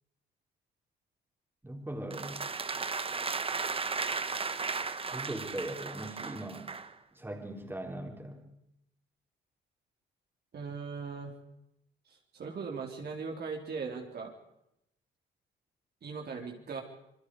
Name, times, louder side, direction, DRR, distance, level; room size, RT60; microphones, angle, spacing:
voice 1, 1.6-2.5 5.1-6.7 7.1-8.5, right 1 dB, 10° right, 1 dB, 4.6 m, -40 dB
sound 1, 2.1-6.9, right 4 dB, 30° right, 1.3 m, -35 dB
voice 2, 10.5-11.3 12.1-14.3 16.0-16.8, right 5 dB, 55° right, 1 dB, 4.1 m, -39 dB
27.5 x 21.5 x 4.9 m, 0.80 s
cardioid pair, 90°, 20 cm